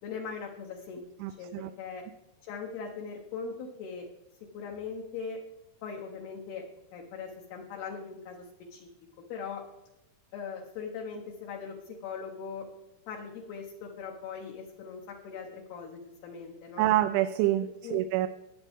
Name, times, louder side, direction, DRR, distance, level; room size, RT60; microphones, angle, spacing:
voice 1, 0.0-1.1 1.4-2.0 2.4-4.1 4.5-5.4 5.8-6.6 6.9-8.4 8.7-8.9 9.3-9.6 10.3-12.7 13.1-16.9 17.8-18.0, left 5 dB, 70° left, 0 dB, 2.7 m, -40 dB
voice 2, 1.2-1.7 16.8-18.3, right 14 dB, 85° right, 9 dB, 2.9 m, -27 dB
20.0 x 8.3 x 3.6 m, 0.94 s
omnidirectional pair, 5.5 m